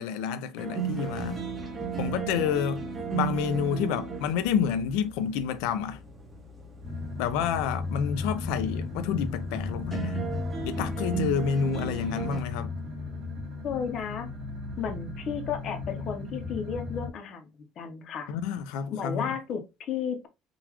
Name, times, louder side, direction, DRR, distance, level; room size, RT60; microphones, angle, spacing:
voice 1, 0.0-1.4 2.0-2.9 3.1-6.0 7.2-10.2 10.7-12.7 18.3-19.3, left 7 dB, 85° left, 0.5 m, -29 dB
sound 1, 0.6-12.4, right 6 dB, 15° right, 0.8 m, -36 dB
sound 2, 6.8-17.1, left 3 dB, 35° right, 1.7 m, -36 dB
voice 2, 13.6-14.3 14.8-18.3 18.9-20.3, left 7 dB, 40° left, 0.7 m, -33 dB
3.8 x 2.4 x 2.9 m
cardioid pair, 170°, 0 cm